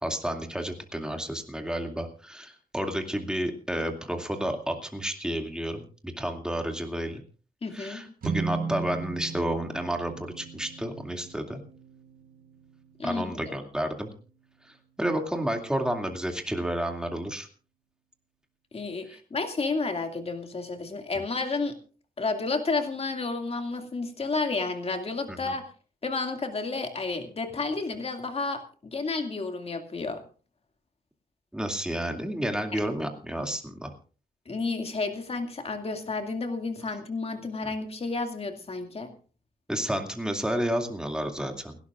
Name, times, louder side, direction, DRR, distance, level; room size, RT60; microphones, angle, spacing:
voice 1, 0.0-5.8 6.2-7.2 7.7-11.6 13.0-14.1 15.0-17.5 25.3-25.5 31.5-33.9 39.7-41.8, right 1 dB, 5° right, 3 dB, 2.4 m, -31 dB
voice 2, 7.6-8.1 13.0-13.3 18.7-21.8 22.2-25.6 26.0-30.2 32.7-32.8 34.5-39.1, left 3 dB, 40° left, 5 dB, 2.2 m, -31 dB
sound 1, 8.2-14.6, right 5 dB, 60° right, 1.2 m, -37 dB
29.0 x 12.0 x 2.5 m, 0.38 s
wide cardioid pair, 125°, 16 cm